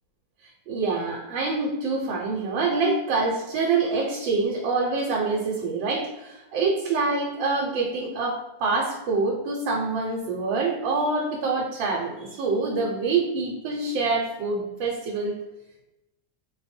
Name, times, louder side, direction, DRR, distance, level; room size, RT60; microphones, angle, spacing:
voice 1, 0.7-15.4, right 3 dB, 75° right, -2 dB, 1.4 m, -26 dB
4.3 x 2.5 x 4.2 m, 0.95 s
omnidirectional pair, 2.1 m